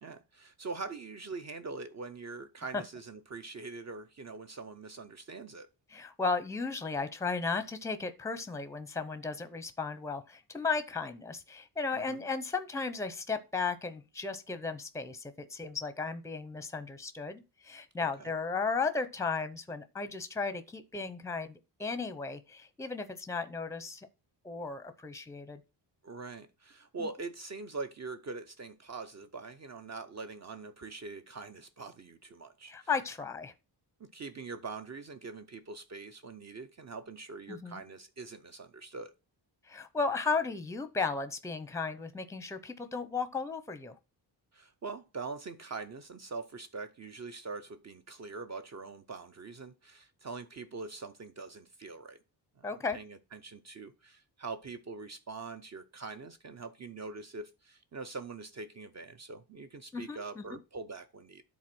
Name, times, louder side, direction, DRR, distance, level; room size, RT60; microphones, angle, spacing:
voice 1, 0.0-5.7 11.9-12.2 18.0-18.3 26.0-32.9 34.0-39.1 44.5-52.2 52.6-61.4, right 4 dB, 35° right, 0.6 m, -43 dB
voice 2, 5.9-24.1 24.4-25.6 27.0-27.1 32.7-33.5 37.5-37.8 39.7-43.9 52.6-53.0 59.9-60.6, left 4 dB, 5° left, 0.6 m, -35 dB
10.5 x 4.0 x 6.0 m
wide cardioid pair, 175°, 45 cm